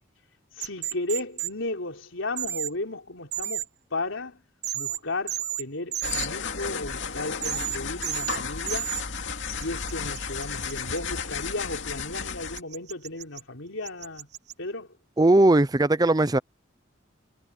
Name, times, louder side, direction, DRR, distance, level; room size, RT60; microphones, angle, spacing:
voice 1, 0.6-4.4 4.7-8.9 9.5-14.3 14.6-14.9, left 2 dB, 90° left, 3.7 m, -34 dB
sound 1, 0.6-1.5 2.4-2.7 3.3-3.7 4.6-5.0 5.3-5.6 5.9-6.3 7.4-8.4 8.7-9.0 9.6-11.0 12.6-13.4 13.8-14.5, right 12 dB, 55° right, 1.4 m, -31 dB
sound 2, 6.0-12.6, left 5 dB, 70° left, 2.4 m, -33 dB
voice 2, 15.2-16.4, right 2 dB, 20° right, 0.5 m, -19 dB
head